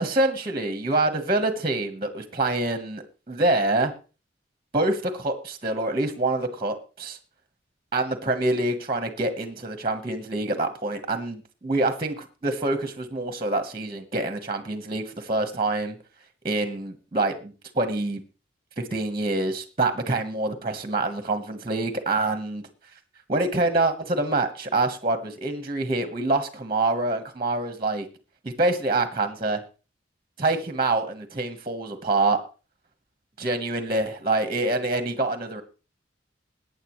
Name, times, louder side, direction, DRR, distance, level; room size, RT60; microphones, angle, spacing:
voice 1, 0.0-3.9 4.7-7.2 7.9-16.0 16.4-18.2 18.8-22.6 23.3-28.1 28.4-29.6 30.4-32.4 33.4-35.6, right 2 dB, 30° right, 7 dB, 1.4 m, -26 dB
22.0 x 9.4 x 3.2 m, 0.35 s
head